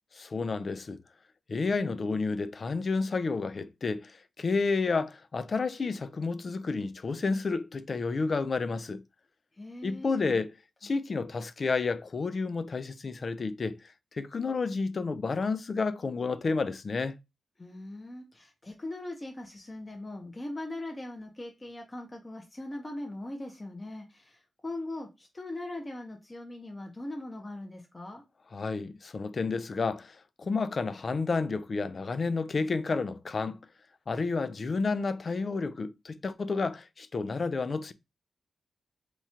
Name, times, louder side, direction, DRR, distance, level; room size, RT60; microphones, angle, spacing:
voice 1, 0.2-1.0 1.5-9.0 9.8-10.5 10.8-13.8 14.1-17.2 28.5-33.6 34.1-37.9, left 4 dB, 50° left, 0.4 m, -30 dB
voice 2, 9.5-10.4 17.6-28.2, left 1 dB, 25° left, 0.8 m, -40 dB
3.0 x 2.4 x 4.3 m
cardioid pair, 65°, 0 cm